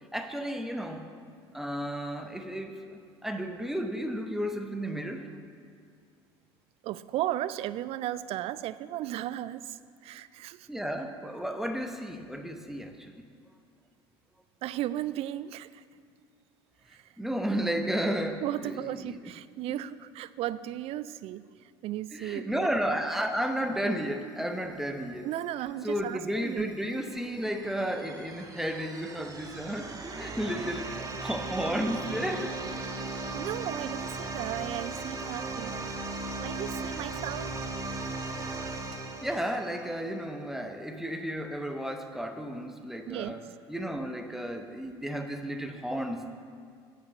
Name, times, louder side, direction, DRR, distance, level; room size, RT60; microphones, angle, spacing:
voice 1, 0.1-1.1 1.5-5.3 10.7-13.1 17.2-19.2 19.7-19.8 22.1-25.3 25.8-30.9 31.2-32.6 39.2-46.3, equal, 5° right, 5 dB, 0.9 m, -33 dB
voice 2, 6.8-10.7 14.6-15.8 16.9-17.0 18.4-21.5 21.8-22.7 25.2-26.7 33.3-35.8 36.4-37.5 43.1-43.5, right 13 dB, 45° right, 16 dB, 0.4 m, -35 dB
sound 1, 26.3-40.2, right 3 dB, 25° right, 1.2 m, -37 dB
8.6 x 6.6 x 6.5 m, 2.2 s
hypercardioid pair, 70°, 14 cm